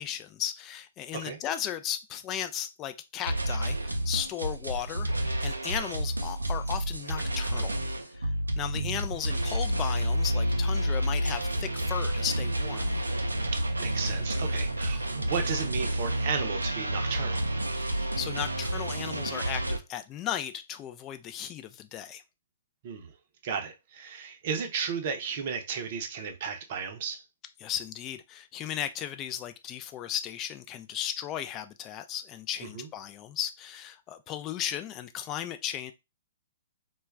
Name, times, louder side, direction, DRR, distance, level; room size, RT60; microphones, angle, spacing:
voice 1, 0.0-7.8 8.2-8.3 8.6-13.0 17.8-22.2 27.6-35.9, left 10 dB, 25° left, 0.3 m, -36 dB
sound 1, 3.2-19.8, right 1 dB, 90° right, 0.4 m, -30 dB
voice 2, 13.5-17.5 22.8-23.1 23.4-27.2 32.7-32.9, right 6 dB, 50° right, 0.6 m, -34 dB
2.2 x 2.2 x 3.4 m
figure-of-eight pair, 120°, 0 cm